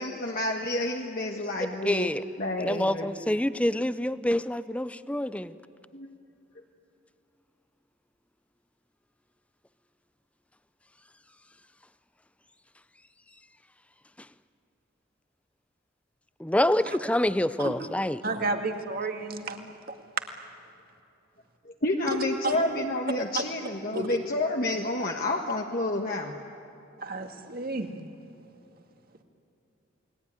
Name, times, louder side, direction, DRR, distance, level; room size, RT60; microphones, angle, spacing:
voice 1, 0.0-2.1 2.4-3.1 5.9-6.1 21.6-26.3, left 2 dB, 45° left, 1 dB, 1.5 m, -29 dB
voice 2, 1.8-2.2 2.6-5.5 16.4-18.2, left 1 dB, 5° left, 14 dB, 0.5 m, -26 dB
voice 3, 18.2-19.7 22.1-22.6 23.9-24.2 27.0-27.9, right 2 dB, 50° right, 5 dB, 2.1 m, -31 dB
29.0 x 21.0 x 9.7 m, 2.8 s
head